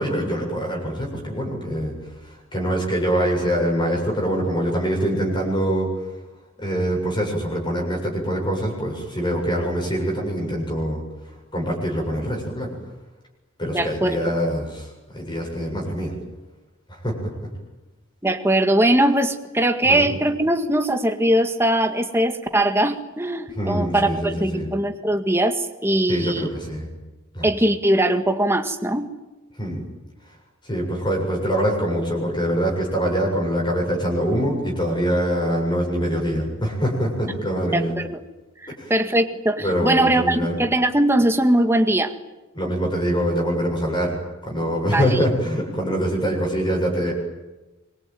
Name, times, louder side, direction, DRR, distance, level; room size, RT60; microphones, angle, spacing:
voice 1, 0.0-1.9 2.2-5.9 6.6-11.0 11.5-12.8 13.6-16.1 16.9-17.2 19.8-20.1 23.5-24.7 26.1-26.9 27.3-27.5 29.6-29.9 30.7-37.9 38.7-38.9 39.6-40.6 42.5-44.2 44.4-47.1, equal, 20° left, 0 dB, 7.5 m, -24 dB
voice 2, 13.7-14.3 18.2-26.5 27.4-29.1 37.7-38.2 38.6-42.1 44.9-45.2, right 1 dB, 10° right, 6 dB, 1.9 m, -21 dB
26.5 x 23.5 x 9.1 m, 1.1 s
head